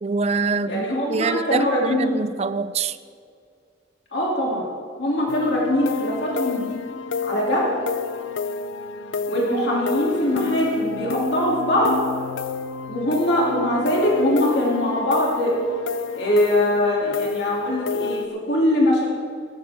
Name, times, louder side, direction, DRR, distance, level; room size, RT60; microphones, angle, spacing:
voice 1, 0.0-3.0, right 4 dB, 30° right, 13 dB, 0.4 m, -25 dB
voice 2, 0.7-2.2 4.1-4.6 5.0-6.8 7.2-7.7 9.3-12.0 12.9-15.5 16.1-19.1, left 1 dB, 60° left, -4 dB, 2.7 m, -22 dB
sound 1, 5.3-18.3, left 4 dB, 75° left, 0.6 m, -30 dB
18.0 x 12.5 x 3.6 m, 2.2 s
head